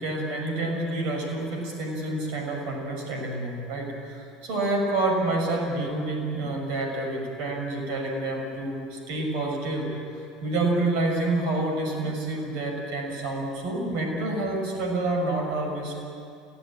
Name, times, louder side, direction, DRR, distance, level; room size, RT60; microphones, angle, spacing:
voice 1, 0.0-9.9 10.1-15.9, right 2 dB, 55° right, 1 dB, 5.9 m, -28 dB
27.0 x 16.5 x 8.8 m, 2.5 s
figure-of-eight pair, 70°, 0 cm